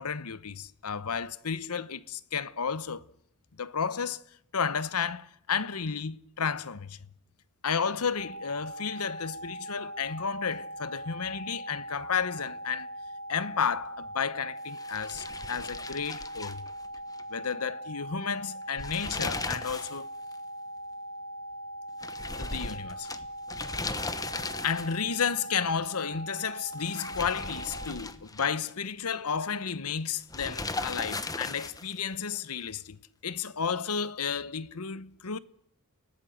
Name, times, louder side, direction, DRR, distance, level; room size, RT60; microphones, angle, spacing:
voice 1, 0.0-3.0 3.6-4.2 4.5-7.0 7.6-12.9 13.3-16.6 17.3-20.1 22.4-23.1 24.6-33.0 33.2-35.4, left 6 dB, 80° left, 1.0 m, -32 dB
sound 1, 8.2-27.9, right 1 dB, 70° right, 3.3 m, -41 dB
sound 2, 14.7-17.2 17.5-17.6 18.6-20.0 20.3-20.4 22.0-25.1 26.7-28.7 30.3-32.0, left 3 dB, 15° left, 1.1 m, -37 dB
30.0 x 18.0 x 7.9 m
head